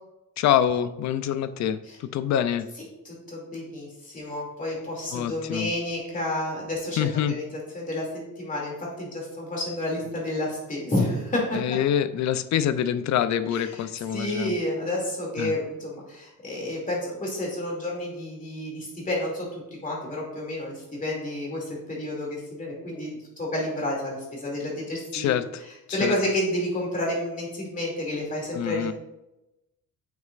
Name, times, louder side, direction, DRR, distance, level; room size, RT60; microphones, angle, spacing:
voice 1, 0.4-2.7 5.1-5.7 7.0-7.4 11.5-14.6 15.4-15.6 25.1-25.4 25.9-26.1 28.5-28.9, left 10 dB, 55° left, 12 dB, 0.5 m, -25 dB
voice 2, 3.0-7.5 7.7-8.1 8.4-11.6 13.5-13.8 14.1-25.3 25.9-28.9, left 1 dB, 25° left, -3 dB, 2.5 m, -30 dB
8.8 x 6.3 x 2.5 m, 0.95 s
cardioid pair, 145°, 34 cm